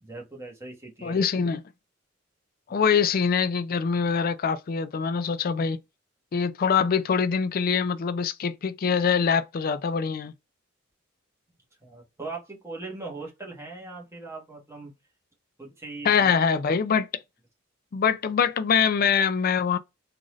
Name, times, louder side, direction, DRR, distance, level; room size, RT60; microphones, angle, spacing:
voice 1, 0.0-1.2 2.7-2.8 11.8-14.9 15.6-16.3, right 3 dB, 15° right, 1.2 m, -40 dB
voice 2, 1.0-1.6 2.7-5.8 6.3-10.3 16.0-17.1 17.9-19.8, left 6 dB, 45° left, 0.4 m, -24 dB
3.9 x 2.5 x 3.0 m
head